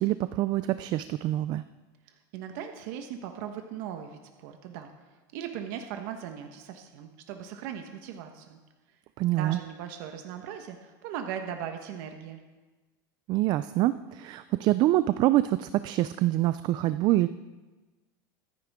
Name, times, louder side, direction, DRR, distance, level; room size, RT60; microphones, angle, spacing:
voice 1, 0.0-1.6 9.2-9.6 13.3-17.3, right 15 dB, 40° right, 14 dB, 0.4 m, -25 dB
voice 2, 2.0-4.9 5.3-8.6 8.9-9.0 9.4-12.4, right 9 dB, 60° right, 5 dB, 1.2 m, -39 dB
24.5 x 9.6 x 3.6 m, 1.2 s
supercardioid pair, 145°, 11 cm